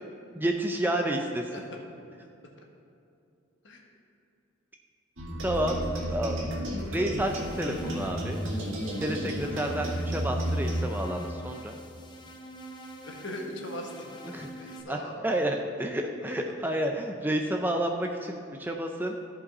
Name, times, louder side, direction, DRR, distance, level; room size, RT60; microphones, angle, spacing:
voice 1, 0.4-1.5 5.4-5.8 6.1-8.4 9.0-11.7 14.3-14.5 14.9-15.0 15.2-19.2, right 1 dB, 10° right, 3 dB, 0.4 m, -30 dB
sound 1, 5.2-10.8, equal, 70° right, 1.9 m, -32 dB
sound 2, 7.1-14.8, right 1 dB, 20° left, 0.7 m, -46 dB
voice 2, 13.0-14.2 14.6-15.3, left 1 dB, 60° left, 1 dB, 1.2 m, -40 dB
13.5 x 5.4 x 4.1 m, 2.6 s
head